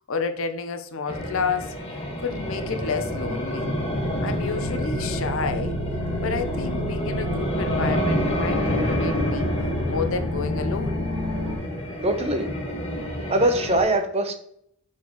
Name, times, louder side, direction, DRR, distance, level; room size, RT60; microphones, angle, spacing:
voice 1, 0.1-1.8 2.2-3.8 4.2-5.8 6.2-9.5 9.9-11.0, left 5 dB, 65° left, 0.7 m, -30 dB
sound 1, 1.1-13.8, left 1 dB, 25° left, 1.6 m, -29 dB
sound 2, 2.3-11.6, equal, 80° right, 1.5 m, -31 dB
voice 2, 12.0-12.5 13.3-14.4, right 1 dB, 30° right, 0.7 m, -22 dB
7.2 x 4.4 x 3.0 m
head